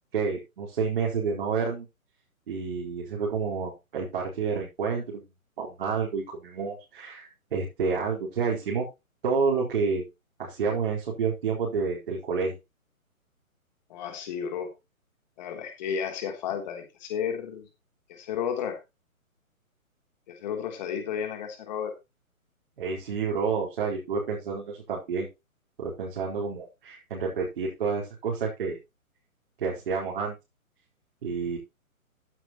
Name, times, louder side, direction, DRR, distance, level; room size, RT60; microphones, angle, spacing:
voice 1, 0.1-1.9 2.5-5.2 5.6-8.9 9.2-10.0 10.4-12.6 22.8-25.3 25.8-28.8 29.6-30.3 31.2-31.6, right 5 dB, 40° right, -4 dB, 4.3 m, -29 dB
voice 2, 13.9-14.7 15.4-17.7 18.1-18.8 20.3-21.9, left 8 dB, 30° left, 4 dB, 3.4 m, -32 dB
14.5 x 9.2 x 3.1 m, 0.25 s
figure-of-eight pair, 135°, 42 cm